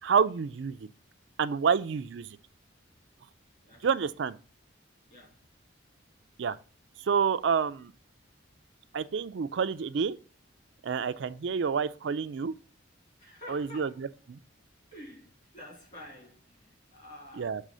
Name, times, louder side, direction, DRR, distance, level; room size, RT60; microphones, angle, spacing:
voice 1, 0.0-0.9 1.4-2.4 3.8-4.4 6.4-6.6 7.0-7.9 8.9-10.2 10.8-12.5 13.5-14.4 17.4-17.6, right 6 dB, 70° right, 0.4 m, -28 dB
voice 2, 3.6-4.1 5.1-5.5 8.5-8.6 11.1-11.7 13.2-14.1 14.9-17.6, left 1 dB, 40° left, 2.9 m, -50 dB
6.6 x 3.4 x 6.1 m
head